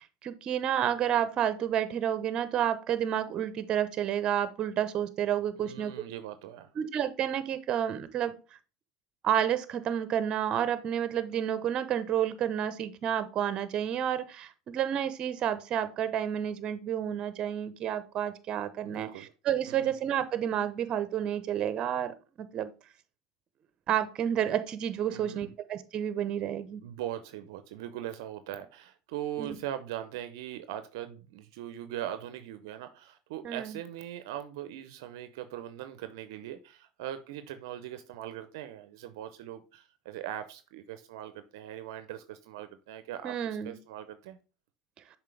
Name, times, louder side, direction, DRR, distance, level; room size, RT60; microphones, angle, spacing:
voice 1, 0.0-5.9 6.8-8.3 9.2-22.7 23.9-26.8 29.4-29.6 33.4-33.8 43.2-43.8, right 9 dB, 45° right, 13 dB, 0.8 m, -30 dB
voice 2, 5.6-6.7 18.8-19.3 19.7-19.9 25.1-25.5 26.8-44.4, right 11 dB, 75° right, 11 dB, 0.6 m, -40 dB
6.7 x 4.3 x 3.3 m, 0.34 s
hypercardioid pair, 90°, 2 cm